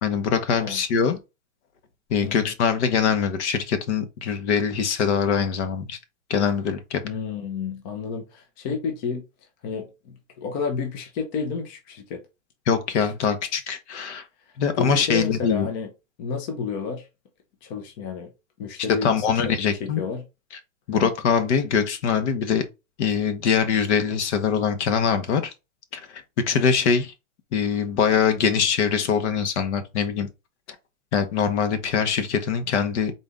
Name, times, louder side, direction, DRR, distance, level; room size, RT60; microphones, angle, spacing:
voice 1, 0.0-1.2 2.1-6.0 6.3-7.0 12.7-14.2 14.6-15.7 19.0-20.0 20.9-22.6 23.0-25.5 25.9-27.1 27.5-30.3 31.1-33.1, left 6 dB, 55° left, 1.1 m, -23 dB
voice 2, 7.0-9.2 9.6-12.2 14.5-15.9 16.2-17.1 17.6-18.3 18.6-19.5 19.8-20.2 20.9-21.1, left 5 dB, 30° left, 0.8 m, -31 dB
4.0 x 3.3 x 3.5 m
hypercardioid pair, 155°, 42 cm